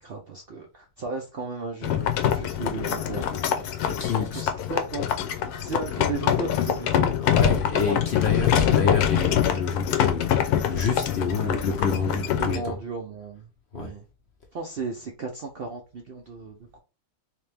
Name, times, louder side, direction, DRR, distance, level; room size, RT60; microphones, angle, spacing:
voice 1, 0.0-3.7 4.2-7.6 7.9-9.0 11.3-11.6 12.4-14.0 14.5-16.8, right 3 dB, 65° right, 0.5 m, -35 dB
sound 1, 1.8-12.6, left 10 dB, 85° left, 1.1 m, -24 dB
voice 2, 3.8-4.4 7.2-10.4 10.7-12.8 13.7-13.9, left 5 dB, 60° left, 0.7 m, -28 dB
3.4 x 2.8 x 3.3 m
omnidirectional pair, 1.6 m